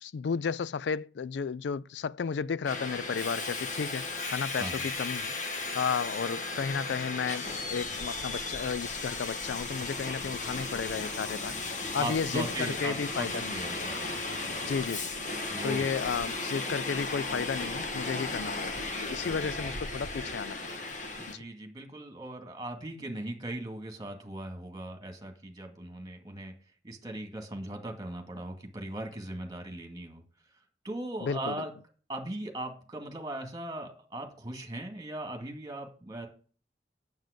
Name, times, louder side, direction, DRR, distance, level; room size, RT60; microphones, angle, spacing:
voice 1, 0.0-4.0 4.3-5.3 5.7-13.6 14.7-15.1 15.6-20.6 21.3-21.4 31.2-31.6, left 6 dB, 80° left, 0.4 m, -33 dB
Subway metro underground, 2.6-21.3, left 3 dB, 45° left, 1.3 m, -35 dB
voice 2, 12.0-14.1 15.5-15.9 19.2-19.5 21.1-26.5 26.8-30.2 30.8-31.7 32.1-36.3, right 1 dB, 20° right, 2.1 m, -39 dB
9.3 x 7.7 x 5.1 m
head